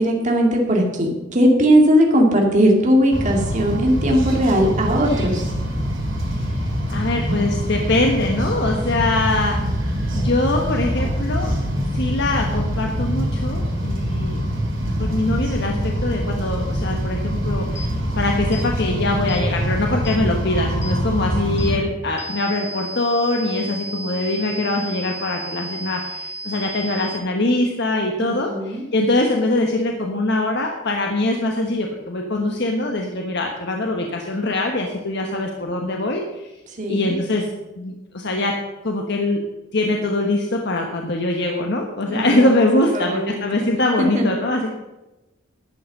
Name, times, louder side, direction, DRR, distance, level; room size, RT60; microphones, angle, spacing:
voice 1, 0.0-5.4 28.2-28.8 36.8-37.2 42.1-42.5 42.9-43.4 44.0-44.3, equal, 40° right, 0 dB, 2.3 m, -18 dB
sound 1, 3.1-21.8, equal, 70° right, 4.7 m, -24 dB
voice 2, 6.9-9.6 10.1-11.5 11.9-14.4 15.0-36.5 36.9-37.5 37.8-38.5 38.8-39.4 39.7-44.7, left 2 dB, 60° left, 2 dB, 1.2 m, -23 dB
sound 2, 17.8-17.9 18.5-18.7 19.3-19.5 20.1-20.2 20.8-21.0 21.6-21.7 22.2-27.2, right 1 dB, 15° left, 0.9 m, -34 dB
12.0 x 8.7 x 6.6 m, 1.0 s
head